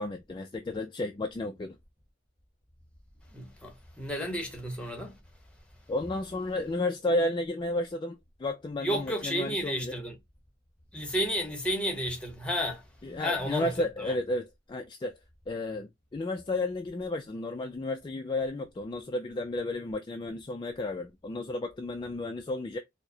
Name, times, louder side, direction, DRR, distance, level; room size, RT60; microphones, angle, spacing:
voice 1, 0.0-1.8 5.9-9.9 13.0-15.2 15.5-22.8, left 2 dB, 25° left, 0.3 m, -32 dB
voice 2, 3.3-5.2 8.8-10.2 10.9-12.8 13.2-13.7 14.0-14.1, equal, 5° left, 0.9 m, -32 dB
4.6 x 2.1 x 2.7 m
head